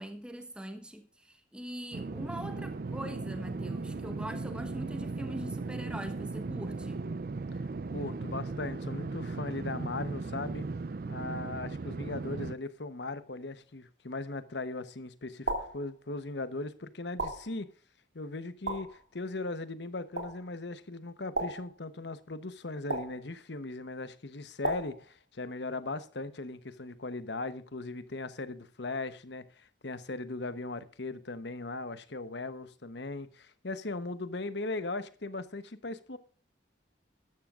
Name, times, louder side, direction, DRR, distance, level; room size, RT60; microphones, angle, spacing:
voice 1, 0.0-7.0, equal, 5° right, 1.2 m, -42 dB
sound 1, 1.9-12.5, right 3 dB, 55° right, 0.5 m, -37 dB
voice 2, 7.9-10.7 11.1-17.7 18.1-36.2, left 2 dB, 70° left, 1.1 m, -38 dB
sound 2, 15.5-15.9 17.2-17.6 18.7-19.0 20.2-20.5 21.4-21.8 22.9-23.3 24.6-25.0, right 2 dB, 80° right, 3.0 m, -34 dB
13.5 x 12.5 x 2.5 m
head